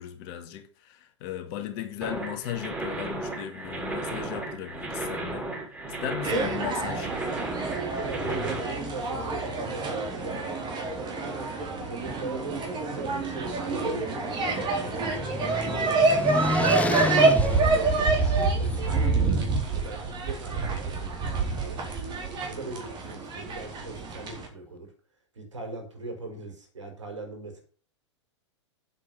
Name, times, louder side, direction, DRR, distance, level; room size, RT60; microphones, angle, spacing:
voice 1, 0.0-5.5 5.9-7.1 11.8-12.1, left 10 dB, 45° left, 2.2 m, -36 dB
sound 1, 2.0-8.6, right 2 dB, 10° right, 7.4 m, -34 dB
sound 2, 6.2-24.5, right 3 dB, 30° right, 4.4 m, -27 dB
voice 2, 7.8-10.6 11.5-21.9 22.4-24.9 25.3-27.6, right 3 dB, 75° right, 6.0 m, -40 dB
sound 3, 14.0-18.8, left 3 dB, 10° left, 0.5 m, -31 dB
9.6 x 8.3 x 6.0 m
figure-of-eight pair, 100°, 16 cm